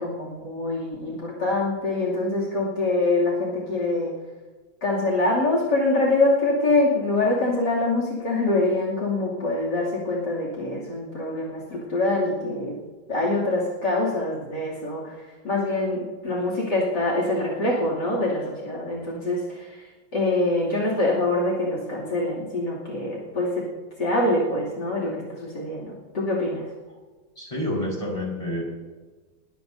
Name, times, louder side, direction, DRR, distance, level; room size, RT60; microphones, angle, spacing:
voice 1, 0.0-4.1 4.8-12.8 13.1-15.1 15.4-19.8 20.1-23.7 24.0-26.6, left 2 dB, 60° left, -2 dB, 3.3 m, -24 dB
voice 2, 27.4-28.6, left 1 dB, 15° left, -2 dB, 4.9 m, -28 dB
21.0 x 15.5 x 2.7 m, 1.3 s
omnidirectional pair, 2.1 m